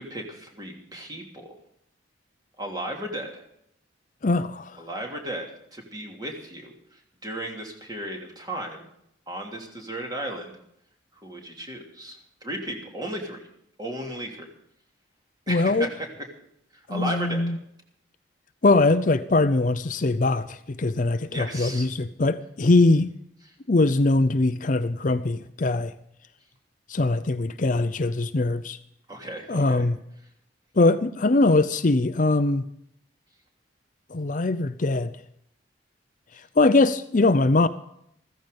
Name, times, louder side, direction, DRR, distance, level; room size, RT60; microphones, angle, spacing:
voice 1, 0.0-1.6 2.6-3.5 4.8-8.9 9.3-10.5 11.1-13.5 13.8-14.5 15.5-16.1 16.7-17.5 21.3-21.9 23.4-23.5 29.1-29.8, right 1 dB, 20° right, 3.1 m, -35 dB
voice 2, 4.2-4.8 15.5-15.9 16.9-17.5 18.6-23.1 23.7-25.9 26.9-28.8 29.5-30.0 30.8-32.6 34.1-35.1 36.6-37.7, left 2 dB, 45° left, 0.6 m, -21 dB
15.0 x 14.5 x 5.3 m
head